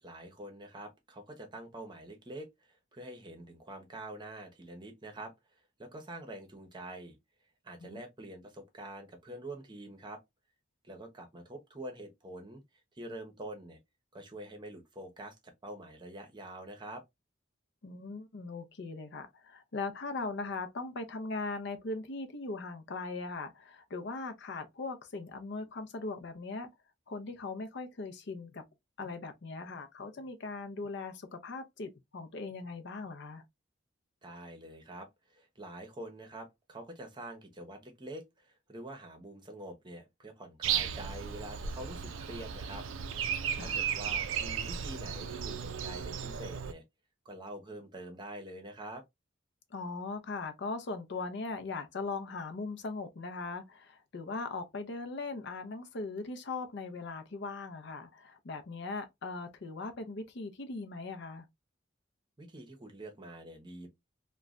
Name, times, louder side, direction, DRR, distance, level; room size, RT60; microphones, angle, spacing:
voice 1, 0.0-7.2 7.6-10.2 10.8-12.6 12.9-13.8 14.1-17.0 34.2-42.9 43.6-46.8 47.2-49.0 62.4-63.9, right 1 dB, 25° right, 0.7 m, -46 dB
voice 2, 17.8-26.7 27.1-28.6 29.0-33.4 43.6-43.8 49.7-61.4, left 3 dB, 60° left, 0.5 m, -39 dB
Breathing, 40.6-46.7, right 8 dB, 80° right, 0.4 m, -35 dB
3.1 x 2.2 x 2.4 m
head